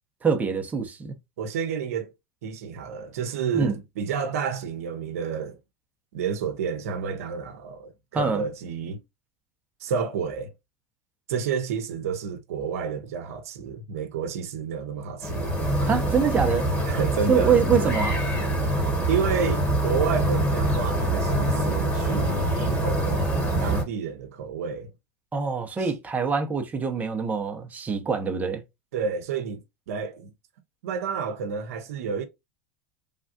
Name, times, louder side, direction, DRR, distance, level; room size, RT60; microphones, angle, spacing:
voice 1, 0.2-1.2 3.5-3.7 8.1-8.4 15.9-16.7 17.3-18.2 25.3-28.6, right 6 dB, 20° right, 0.7 m, -24 dB
voice 2, 1.4-2.1 2.4-5.6 6.1-9.0 9.8-10.5 11.3-15.5 16.8-17.6 19.1-23.2 23.6-24.9 25.8-25.9 28.9-30.3 30.8-32.3, right 6 dB, 80° right, 0.7 m, -30 dB
sound 1, 15.2-23.8, right 1 dB, 20° left, 1.6 m, -25 dB
3.3 x 2.3 x 2.6 m
hypercardioid pair, 100°, 8 cm